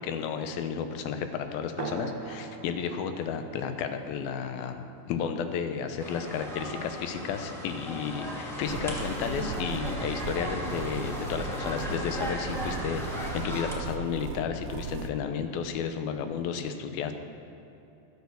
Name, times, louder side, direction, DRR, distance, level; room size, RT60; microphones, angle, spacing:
voice 1, 0.0-4.8 5.1-17.1, left 7 dB, 75° left, 8 dB, 2.5 m, -32 dB
sound 1, 1.8-6.8, right 6 dB, 70° right, 2.4 m, -43 dB
sound 2, 6.0-13.7, equal, 5° left, 0.3 m, -36 dB
sound 3, 8.7-15.1, right 6 dB, 85° right, 2.6 m, -38 dB
13.0 x 8.8 x 7.0 m, 2.9 s
omnidirectional pair, 4.7 m